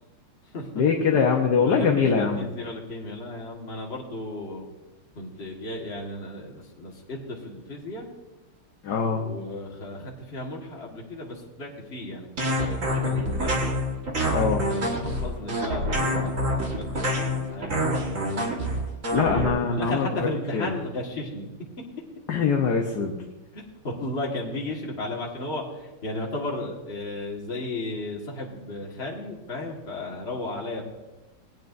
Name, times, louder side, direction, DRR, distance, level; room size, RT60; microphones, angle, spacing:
voice 1, 0.8-2.5 8.8-9.2 14.3-14.6 19.1-20.1 20.5-20.7 22.3-23.1, left 5 dB, 60° left, 1 dB, 1.3 m, -22 dB
voice 2, 1.6-4.7 5.2-8.1 9.1-13.5 14.4-18.5 19.2-21.5 23.5-30.8, left 2 dB, 30° left, -2 dB, 1.8 m, -35 dB
sound 1, 12.4-19.5, equal, 40° right, 1.8 m, -26 dB
20.0 x 9.1 x 2.6 m, 1.1 s
omnidirectional pair, 2.4 m